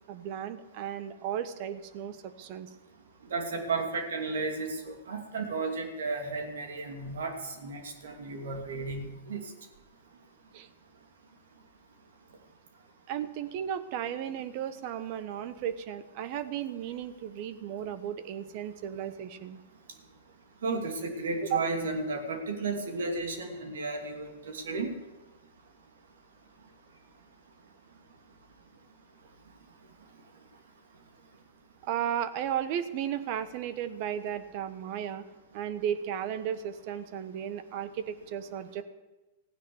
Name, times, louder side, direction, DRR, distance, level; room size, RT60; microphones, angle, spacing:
voice 1, 0.1-2.7 10.5-10.7 13.1-19.6 21.4-21.6 31.8-35.3 35.5-38.8, right 9 dB, 50° right, 12 dB, 1.2 m, -34 dB
voice 2, 3.3-7.3 7.6-9.4 20.6-25.0, right 3 dB, 75° right, 3 dB, 2.7 m, -33 dB
15.5 x 9.8 x 7.2 m, 1.1 s
hypercardioid pair, 105°, 0 cm